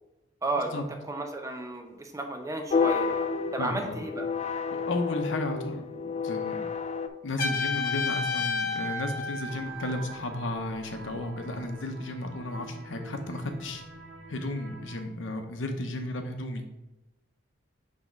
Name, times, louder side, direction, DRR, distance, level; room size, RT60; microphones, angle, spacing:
voice 1, 0.4-4.3, right 2 dB, 15° right, 3 dB, 0.7 m, -33 dB
sound 1, 2.7-7.1, left 5 dB, 35° left, 0.4 m, -30 dB
voice 2, 3.6-4.0 4.9-5.9 6.2-6.6 7.2-13.8 14.3-16.6, left 2 dB, 85° left, 5 dB, 0.8 m, -33 dB
Trumpet, 7.4-10.2, left 4 dB, 55° left, 1.1 m, -31 dB
sound 2, 9.5-15.0, right 2 dB, 55° right, 1.0 m, -46 dB
6.1 x 3.6 x 5.2 m, 0.99 s
head